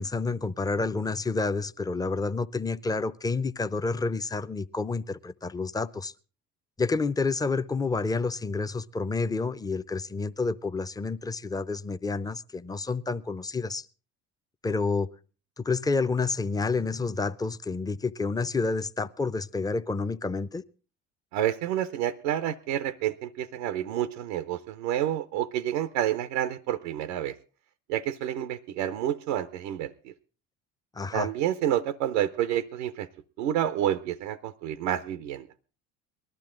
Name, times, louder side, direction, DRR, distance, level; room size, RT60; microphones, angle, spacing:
voice 1, 0.0-6.1 6.8-13.9 14.6-15.1 15.6-20.6 30.9-31.3, left 3 dB, 10° left, 0.6 m, -29 dB
voice 2, 21.3-27.4 27.9-30.1 31.1-33.1 33.4-35.5, right 11 dB, 90° right, 0.7 m, -29 dB
19.5 x 12.0 x 3.7 m
supercardioid pair, 80°, 34 cm